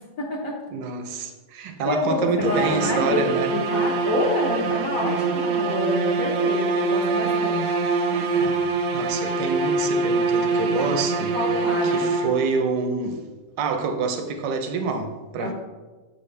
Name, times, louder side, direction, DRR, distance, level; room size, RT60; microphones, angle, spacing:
voice 1, 0.2-0.6 1.8-3.2 3.5-7.8 11.3-12.1 15.4-15.5, left 2 dB, 60° left, 1.2 m, -27 dB
voice 2, 0.7-3.5 8.9-11.4 11.9-13.2 13.6-15.5, right 4 dB, 85° right, 1.3 m, -27 dB
sound 1, 2.4-12.6, right 4 dB, 70° right, 0.9 m, -24 dB
7.4 x 4.3 x 3.2 m
omnidirectional pair, 1.9 m